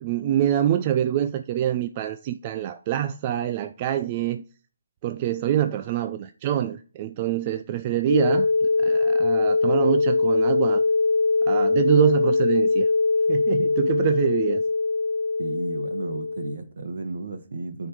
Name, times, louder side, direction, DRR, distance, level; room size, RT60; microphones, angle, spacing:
voice 1, 0.0-4.4 5.0-8.5 8.8-10.8 11.4-12.9 13.3-14.6, right 11 dB, 25° right, 0.4 m, -25 dB
sound 1, 8.1-16.5, left 3 dB, 80° left, 0.8 m, -22 dB
voice 2, 15.4-17.9, right 3 dB, 60° right, 1.5 m, -33 dB
9.5 x 4.5 x 4.9 m
hypercardioid pair, 165°, 0 cm